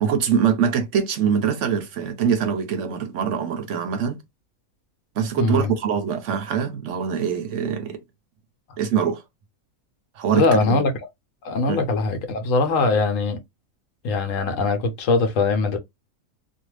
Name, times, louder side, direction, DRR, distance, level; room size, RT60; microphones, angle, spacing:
voice 1, 0.0-4.2 5.2-8.0 8.8-9.2 10.2-10.8 11.7-11.8, right 7 dB, 70° right, 0.9 m, -23 dB
voice 2, 5.4-5.7 10.3-10.9 11.4-13.4 14.0-15.8, left 3 dB, 70° left, 1.0 m, -21 dB
2.6 x 2.3 x 3.1 m
omnidirectional pair, 1.5 m